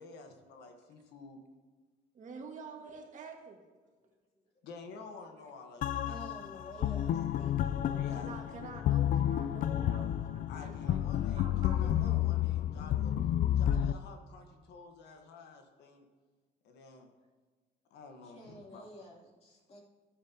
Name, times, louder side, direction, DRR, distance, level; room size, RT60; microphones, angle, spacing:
voice 1, 0.0-1.4 4.6-6.9 7.9-8.6 10.5-13.1 13.4-16.0 16.6-17.1 17.9-18.9, left 4 dB, 80° left, 4 dB, 1.4 m, -51 dB
voice 2, 2.1-3.6 7.8-11.0 11.3-12.5, right 4 dB, 45° right, 1 dB, 1.9 m, -48 dB
sound 1, 5.8-13.9, left 11 dB, 55° left, 0.4 m, -31 dB
voice 3, 6.0-8.0 18.2-19.8, equal, 40° left, -3 dB, 2.9 m, -51 dB
14.0 x 9.8 x 2.9 m, 1.4 s
cardioid pair, 110°, 17 cm